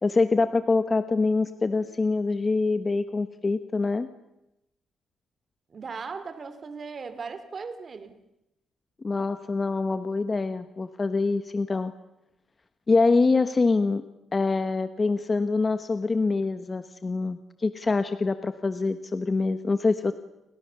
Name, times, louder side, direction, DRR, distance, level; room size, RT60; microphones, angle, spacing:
voice 1, 0.0-4.1 9.0-11.9 12.9-14.0 14.3-20.1, left 3 dB, 25° left, 1.1 m, -25 dB
voice 2, 5.7-8.2, right 5 dB, 40° right, 2.6 m, -38 dB
30.0 x 24.5 x 6.9 m
cardioid pair, 130°, 0 cm